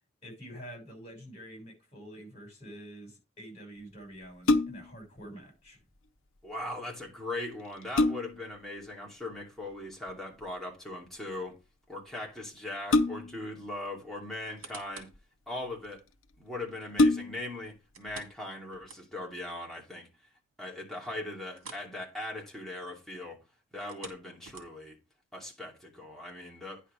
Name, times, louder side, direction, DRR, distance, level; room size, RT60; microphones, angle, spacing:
voice 1, 0.2-5.8, equal, 30° left, 6.3 m, -47 dB
sound 1, 4.2-5.0 7.0-7.1 7.6-8.5 10.1-10.4 12.9-13.5 14.5-15.2 15.9-16.0 16.3-16.4 16.9-17.6 18.1-18.2, left 2 dB, 80° left, 0.8 m, -26 dB
voice 2, 6.4-11.6 11.9-15.1 15.5-16.0 16.4-20.1 20.6-23.4 23.7-25.0 25.3-26.8, left 1 dB, ahead, 2.6 m, -39 dB
sound 2, 14.3-15.2 15.7-15.8 17.9-19.4 19.7-19.8 20.3-20.4 21.5-21.9 22.2-22.4 23.7-25.0 25.6-25.7, right 4 dB, 80° right, 2.3 m, -49 dB
10.0 x 5.0 x 5.1 m
head